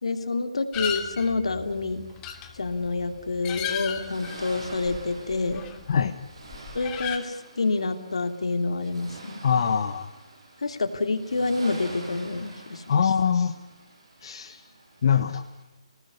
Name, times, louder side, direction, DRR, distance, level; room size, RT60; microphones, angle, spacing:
voice 1, 0.0-2.0 2.5-5.6 6.7-9.4 10.6-13.0, left 3 dB, 75° left, 8 dB, 3.0 m, -28 dB
sound 1, 0.7-6.1 6.4-7.2, left 9 dB, 20° left, 2.9 m, -35 dB
Accelerating revving vroom, 1.6-15.6, right 2 dB, 60° right, 7.7 m, -47 dB
voice 2, 9.4-10.1 12.9-13.5 14.2-14.6 15.0-15.4, left 7 dB, 55° left, 7 dB, 1.5 m, -23 dB
29.0 x 19.0 x 8.4 m, 1.1 s
figure-of-eight pair, 140°, 3 cm